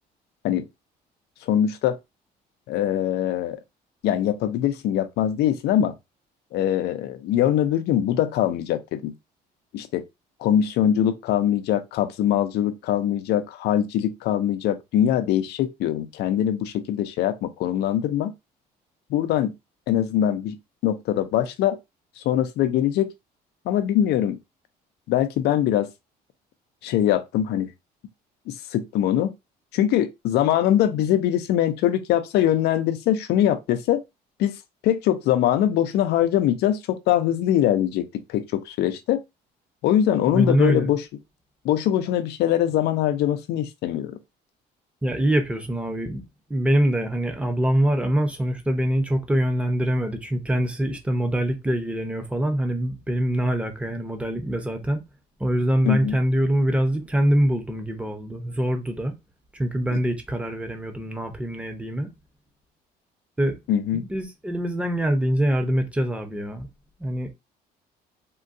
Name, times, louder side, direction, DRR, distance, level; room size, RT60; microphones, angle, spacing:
voice 1, 1.5-2.0 2.7-3.6 4.0-5.9 6.5-9.1 9.7-10.0 10.4-18.3 19.1-19.5 19.9-20.6 20.8-21.8 22.2-23.1 23.7-24.4 25.1-25.9 26.8-27.7 28.5-29.3 29.7-34.0 34.4-34.5 34.8-39.2 39.8-41.0 41.6-44.2 55.8-56.2 63.7-64.0, left 11 dB, 80° left, 0.5 m, -22 dB
voice 2, 40.3-40.8 45.0-46.2 46.5-55.0 55.4-59.1 59.5-62.1 63.4-63.6 63.9-66.7 67.0-67.3, right 1 dB, 5° right, 0.7 m, -24 dB
3.6 x 2.3 x 2.6 m
cardioid pair, 110°, 17 cm